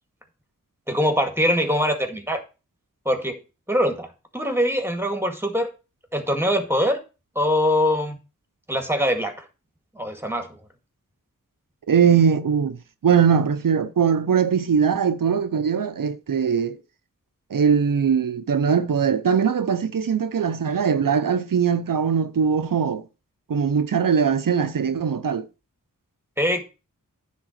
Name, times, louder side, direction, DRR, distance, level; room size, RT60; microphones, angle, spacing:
voice 1, 0.9-2.4 3.1-3.4 3.7-5.7 6.1-7.0 7.4-8.2 8.7-9.4 10.0-10.6 26.4-26.6, equal, 5° right, 1.9 m, -23 dB
voice 2, 11.9-16.8 17.5-23.0 23.5-25.5, right 7 dB, 80° right, 0.7 m, -21 dB
10.0 x 3.8 x 6.5 m
wide cardioid pair, 50°, 33 cm